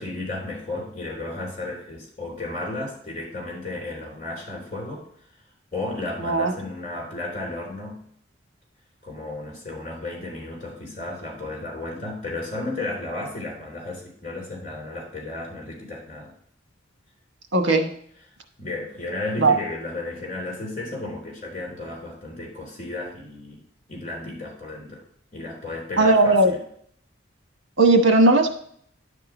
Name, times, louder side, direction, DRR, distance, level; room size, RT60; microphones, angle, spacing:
voice 1, 0.0-5.1 5.7-8.0 9.0-16.3 18.6-23.6 23.9-25.0 25.3-26.6, left 2 dB, 35° left, -3 dB, 3.5 m, -33 dB
voice 2, 6.2-6.5 17.5-17.9 19.4-19.5 26.0-26.5 27.8-28.5, right 2 dB, 85° right, 5 dB, 1.2 m, -17 dB
10.5 x 3.7 x 6.0 m, 0.63 s
head